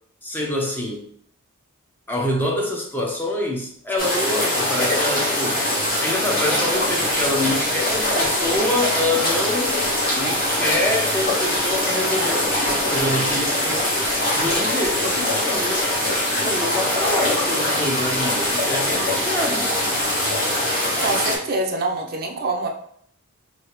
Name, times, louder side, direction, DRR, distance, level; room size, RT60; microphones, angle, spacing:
voice 1, 0.2-1.1 2.1-14.0 14.3-19.7, left 1 dB, 10° left, -1 dB, 0.5 m, -26 dB
sound 1, 4.0-21.4, left 1 dB, 40° left, 1.3 m, -22 dB
voice 2, 21.0-22.7, right 2 dB, 45° right, 2 dB, 0.4 m, -25 dB
3.0 x 2.7 x 3.0 m, 0.64 s
head